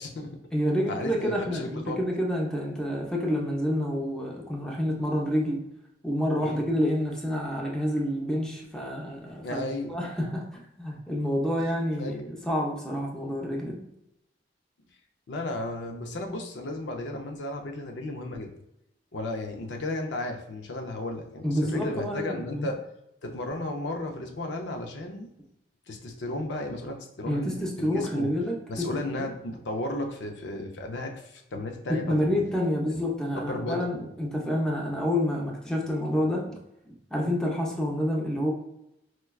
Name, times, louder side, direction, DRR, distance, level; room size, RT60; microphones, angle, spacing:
voice 1, 0.0-0.4 0.9-2.0 6.4-6.6 9.4-10.0 11.6-11.7 12.0-12.2 15.3-18.5 19.1-22.8 23.2-25.3 25.9-28.3 28.7-32.3 32.9-33.0 33.3-33.9, left 2 dB, 85° left, 3 dB, 0.5 m, -34 dB
voice 2, 0.5-5.6 6.0-13.8 21.4-22.7 27.3-29.3 31.9-36.5 36.9-38.5, equal, 5° left, -2 dB, 0.6 m, -28 dB
4.4 x 2.2 x 2.3 m, 0.82 s
head